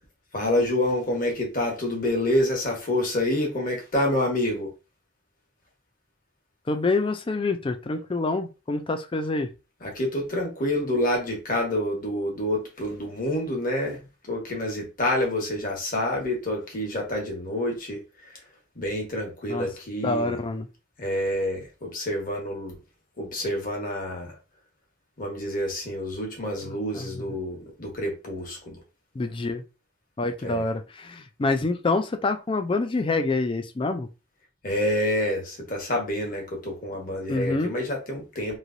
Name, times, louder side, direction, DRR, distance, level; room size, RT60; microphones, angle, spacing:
voice 1, 0.3-4.7 9.8-14.0 14.3-18.0 18.7-20.4 21.0-22.8 23.2-24.4 25.2-28.8 30.4-30.6 34.6-38.6, left 1 dB, 45° left, 1.3 m, -27 dB
voice 2, 6.7-9.5 19.5-19.7 20.0-20.7 26.6-27.1 29.2-29.6 30.2-34.1 37.3-37.7, left 3 dB, 25° left, 0.4 m, -26 dB
3.1 x 2.8 x 2.6 m
head